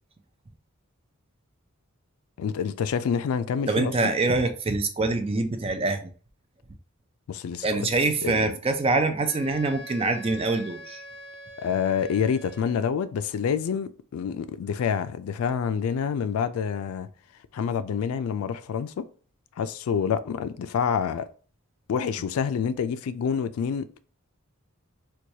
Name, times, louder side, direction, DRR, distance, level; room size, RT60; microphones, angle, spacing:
voice 1, 2.4-3.9 7.3-7.9 8.2-8.5 11.6-17.1 17.5-19.1 19.6-21.3 21.9-23.9, left 7 dB, 80° left, 0.3 m, -27 dB
voice 2, 3.7-6.1 7.6-11.0, right 3 dB, 25° right, 0.4 m, -25 dB
Wind instrument woodwind instrument, 9.2-13.0, left 1 dB, 25° left, 0.7 m, -44 dB
4.5 x 2.2 x 2.7 m
head